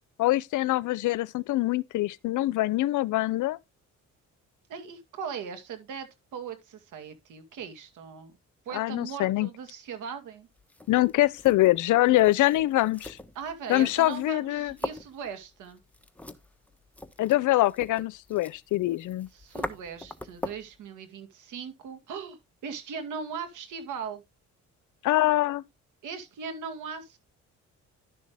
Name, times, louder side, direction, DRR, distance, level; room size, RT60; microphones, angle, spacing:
voice 1, 0.2-3.6 8.7-9.5 10.9-13.2 13.7-14.7 17.2-19.3 25.0-25.6, left 16 dB, 80° left, 0.6 m, -24 dB
voice 2, 4.7-8.3 8.7-10.5 13.4-15.8 19.3-24.2 26.0-27.2, right 6 dB, 85° right, 2.3 m, -39 dB
sound 1, 10.6-20.8, left 1 dB, 5° left, 1.1 m, -42 dB
11.5 x 6.4 x 3.4 m
cardioid pair, 90°, 30 cm